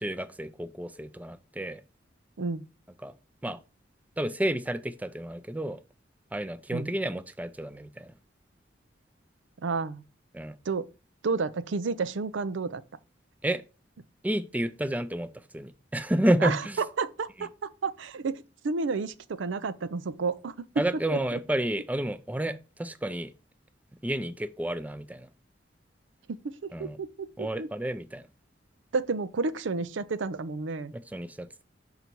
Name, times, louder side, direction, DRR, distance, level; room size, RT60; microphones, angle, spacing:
voice 1, 0.0-1.8 3.0-3.1 3.4-3.6 4.2-5.8 6.3-8.1 10.3-10.6 13.4-13.6 14.2-16.8 17.4-17.5 20.8-23.3 24.0-25.3 26.7-27.0 27.4-28.3 30.9-31.6, right 1 dB, 10° right, 0.5 m, -30 dB
voice 2, 9.6-10.0 10.7-10.9 11.2-12.8 16.4-20.9 21.1-21.4 26.3-27.7 28.9-30.9, right 4 dB, 85° right, 0.5 m, -31 dB
5.8 x 4.0 x 4.5 m
head